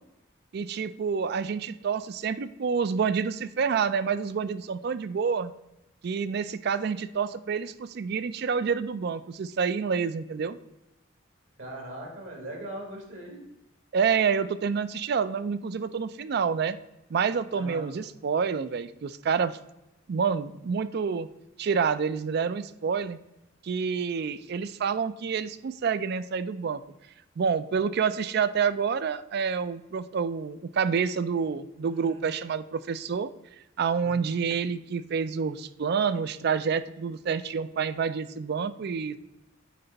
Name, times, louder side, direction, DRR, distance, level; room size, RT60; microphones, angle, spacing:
voice 1, 0.5-5.5 6.0-10.6 13.9-16.8 17.1-19.6 20.1-21.3 21.6-23.2 23.6-26.8 27.4-33.3 33.8-39.2, right 6 dB, 55° right, 14 dB, 0.4 m, -28 dB
voice 2, 11.6-13.4 17.5-17.9 31.9-32.3 34.0-34.4, right 1 dB, 75° right, 0 dB, 2.2 m, -40 dB
9.3 x 3.4 x 4.0 m, 0.90 s
head